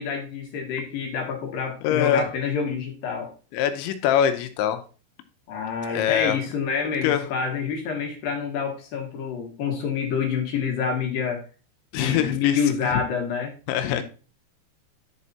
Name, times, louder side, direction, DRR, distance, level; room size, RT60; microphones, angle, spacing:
voice 1, 0.0-3.3 5.5-11.4 11.9-13.5 13.8-14.0, left 6 dB, 60° left, 2 dB, 2.5 m, -27 dB
voice 2, 1.8-2.3 3.5-4.8 5.9-6.4 7.0-7.3 11.9-13.0 13.7-14.0, left 9 dB, 80° left, 8 dB, 2.9 m, -23 dB
11.0 x 4.8 x 4.1 m, 0.36 s
omnidirectional pair, 5.8 m